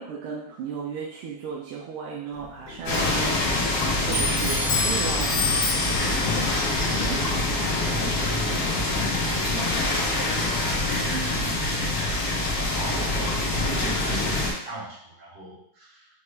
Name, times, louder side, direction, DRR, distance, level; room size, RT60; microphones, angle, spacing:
voice 1, 0.0-3.6 4.0-5.6 6.0-6.2 6.8-7.3, right 6 dB, 90° right, -3 dB, 1.5 m, -35 dB
Clock, 2.3-11.6, left 3 dB, 75° left, 1.9 m, -32 dB
sound 1, 2.9-14.5, left 2 dB, 60° left, 1.4 m, -25 dB
voice 2, 7.5-10.3 10.6-16.1, right 3 dB, 65° right, -7 dB, 2.2 m, -38 dB
5.4 x 2.3 x 3.2 m, 0.64 s
omnidirectional pair, 2.2 m